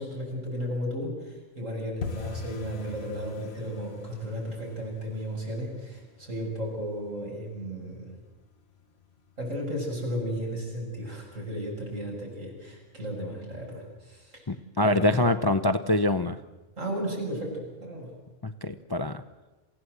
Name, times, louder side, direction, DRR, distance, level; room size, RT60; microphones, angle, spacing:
voice 1, 0.0-8.2 9.4-14.4 14.8-15.3 16.8-18.2, equal, 75° right, -1 dB, 7.6 m, -34 dB
sound 1, 2.0-12.7 13.0-13.7 13.9-14.2 14.5-14.9 15.2-15.3 15.8-16.3 16.7-16.8 17.3-17.4, left 4 dB, 55° left, 1.4 m, -45 dB
voice 2, 14.5-16.4 18.4-19.2, left 1 dB, 25° left, 9 dB, 0.5 m, -25 dB
28.0 x 16.5 x 8.0 m, 1.2 s
omnidirectional pair, 1.4 m